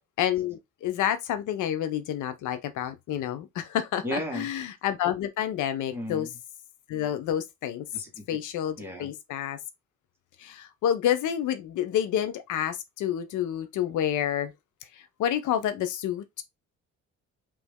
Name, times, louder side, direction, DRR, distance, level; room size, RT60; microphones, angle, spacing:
voice 1, 0.2-6.3 6.9-7.9 8.3-9.6 10.4-14.5 14.9-16.4, left 10 dB, 80° left, 0.6 m, -29 dB
voice 2, 4.0-4.5 5.9-6.3 7.9-8.3 8.8-9.1, equal, 10° right, 1.6 m, -34 dB
3.4 x 3.0 x 3.5 m
cardioid pair, 90°, 30 cm